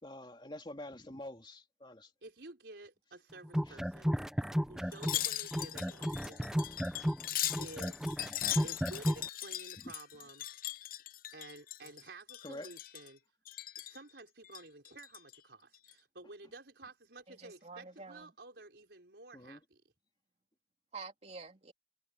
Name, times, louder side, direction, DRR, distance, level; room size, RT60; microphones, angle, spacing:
voice 1, 0.0-2.1 3.7-3.8 9.8-9.9 12.4-12.7 19.3-19.6, left 1 dB, 25° left, 2.8 m, -46 dB
voice 2, 2.2-4.2 4.7-6.8 7.6-8.1 8.6-10.5 11.3-13.2 13.8-19.8, right 2 dB, 75° right, 4.8 m, -52 dB
sound 1, 3.4-5.2 5.5-9.3, equal, 5° right, 0.7 m, -33 dB
Wind chime, 4.9-12.0 12.3-13.1 13.5-14.0 14.4-15.4 15.7-15.9, left 13 dB, 50° left, 0.6 m, -39 dB
voice 3, 17.3-18.3 20.9-21.7, right 4 dB, 40° right, 2.9 m, -48 dB
head